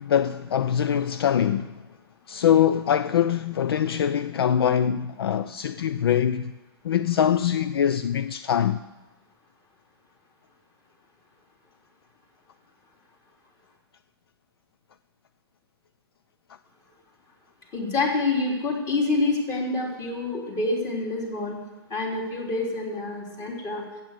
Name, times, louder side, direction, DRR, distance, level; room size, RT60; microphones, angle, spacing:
voice 1, 0.0-1.8 2.3-6.5 6.8-8.8, left 9 dB, 65° left, 0.4 m, -23 dB
voice 2, 17.7-21.6 21.9-23.8, left 3 dB, 25° left, 3.3 m, -27 dB
14.5 x 8.2 x 6.8 m
figure-of-eight pair, 110°, 14 cm